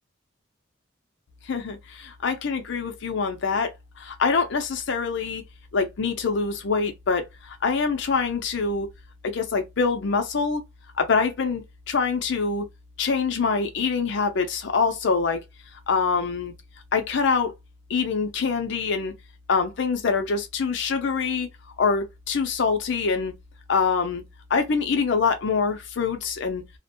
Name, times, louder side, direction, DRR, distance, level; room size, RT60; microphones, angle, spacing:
voice 1, 1.4-5.4 5.7-8.9 9.2-10.6 11.0-12.7 13.0-15.4 15.9-16.5 16.9-17.5 17.9-19.1 19.5-21.5 21.8-23.3 23.7-24.2 24.5-26.6, left 5 dB, 65° left, 0.5 m, -25 dB
2.4 x 2.1 x 2.8 m
head